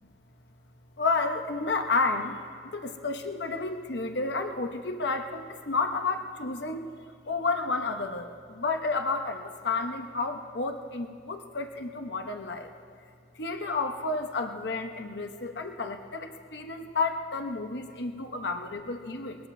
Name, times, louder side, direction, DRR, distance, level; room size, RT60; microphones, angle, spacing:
voice 1, 1.0-2.4 2.7-6.9 7.3-8.3 8.5-12.7 13.4-19.4, left 3 dB, 85° left, 5 dB, 1.0 m, -31 dB
20.5 x 20.5 x 2.7 m, 2.2 s
head